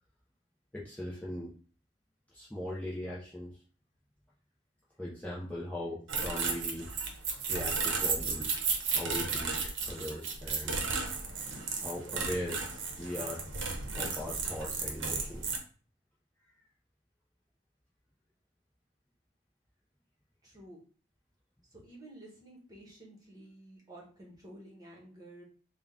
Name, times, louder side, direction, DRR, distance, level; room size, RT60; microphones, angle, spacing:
voice 1, 0.7-1.5 2.3-3.6 5.0-6.9 7.5-8.5 8.9-9.6 9.9-10.8 11.8-12.6 12.9-13.4 13.9-15.5, left 1 dB, 10° left, -6 dB, 0.7 m, -39 dB
sound 1, 6.1-15.6, right 4 dB, 70° right, 0.8 m, -34 dB
voice 2, 20.4-20.8 21.7-25.4, right 1 dB, 20° right, -2 dB, 1.2 m, -52 dB
3.8 x 2.3 x 3.6 m, 0.40 s
head